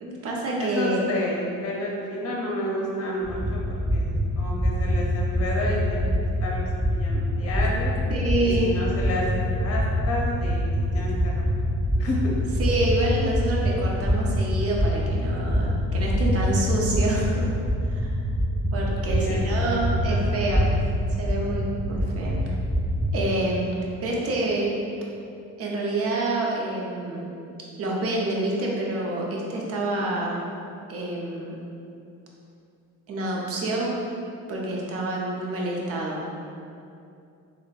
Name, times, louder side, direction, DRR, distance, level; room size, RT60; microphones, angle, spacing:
voice 1, 0.0-1.1 8.1-8.7 12.6-17.5 17.9-18.1 18.7-20.7 21.2-22.3 23.1-23.7 24.0-24.7 25.6-27.3 27.8-30.4 30.9-31.6 33.1-33.9 34.5-36.2, right 2 dB, 45° right, -3 dB, 0.7 m, -27 dB
voice 2, 0.6-3.6 3.9-6.1 6.4-7.9 8.4-11.3 12.0-12.2 19.1-19.4 19.8-20.2 20.6-20.7, left 1 dB, 45° left, -3 dB, 0.7 m, -30 dB
sound 1, 3.2-23.1, equal, 15° right, 1.2 m, -25 dB
3.6 x 2.2 x 2.4 m, 2.5 s
supercardioid pair, 80°, 33 cm